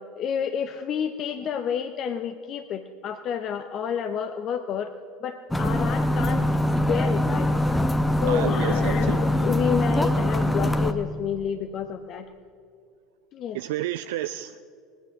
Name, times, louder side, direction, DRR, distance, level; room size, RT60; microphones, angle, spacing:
voice 1, 0.0-4.9 5.2-7.5 8.2-12.3 13.3-13.6, left 8 dB, 45° left, 8 dB, 0.7 m, -29 dB
sound 1, 5.5-10.9, left 1 dB, 10° left, 1.0 m, -23 dB
voice 2, 8.3-9.2 13.5-14.6, right 14 dB, 70° right, 11 dB, 0.3 m, -31 dB
19.5 x 10.0 x 6.5 m, 2.5 s
hypercardioid pair, 75°, 0 cm